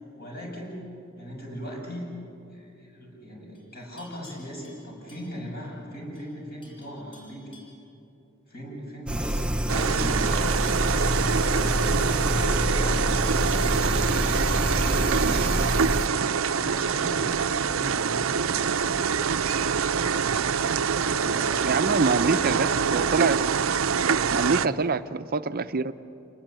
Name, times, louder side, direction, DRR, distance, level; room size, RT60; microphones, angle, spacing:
voice 1, 0.2-0.9 1.2-2.1 2.5-7.5 8.5-14.2 14.8-18.6 20.2-20.6 21.1-22.6 24.5-24.7, equal, 50° left, -1 dB, 7.6 m, -39 dB
Livestock farm animals working animals, 3.5-5.8 6.2-6.4 6.6-7.9 10.0-10.9 13.2-16.2 18.6-19.5, left 2 dB, 25° left, 6.9 m, -54 dB
sound 1, 9.1-16.1, right 1 dB, 5° right, 0.6 m, -26 dB
sound 2, 9.7-24.7, right 6 dB, 85° right, 0.6 m, -25 dB
voice 2, 21.6-23.4 24.3-25.9, right 4 dB, 50° right, 11 dB, 0.6 m, -25 dB
28.0 x 19.5 x 9.0 m, 2.8 s
head